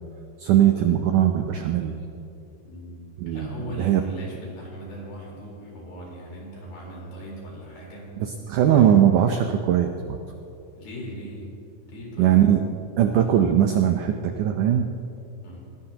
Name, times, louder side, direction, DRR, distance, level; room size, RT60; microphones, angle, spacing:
voice 1, 0.4-2.0 3.2-4.0 8.2-10.2 12.2-12.6 13.0-14.9, right 10 dB, 85° right, 5 dB, 1.8 m, -20 dB
voice 2, 2.6-8.1 8.7-9.0 10.8-11.5 11.8-12.4 15.4-15.6, equal, 60° left, -4 dB, 5.9 m, -39 dB
21.5 x 19.0 x 2.9 m, 2.7 s
omnidirectional pair, 4.6 m